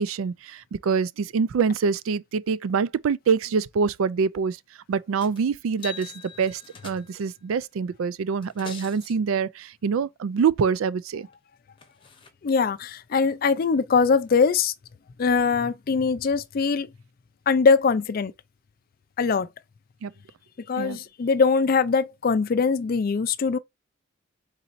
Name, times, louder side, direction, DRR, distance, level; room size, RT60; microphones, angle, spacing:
voice 1, 0.0-4.6 4.9-6.1 6.4-11.3 20.0-20.1 20.8-21.0, right 5 dB, 75° right, 0.4 m, -25 dB
sound 1, 5.2-5.4 5.7-7.3 8.3-9.2 11.3-11.4 11.8-12.3 13.2-13.3, left 6 dB, 25° left, 0.8 m, -43 dB
voice 2, 12.4-14.7 15.2-16.9 17.5-18.3 19.2-19.5 20.7-23.6, left 5 dB, 45° left, 0.4 m, -22 dB
4.1 x 4.0 x 2.5 m
head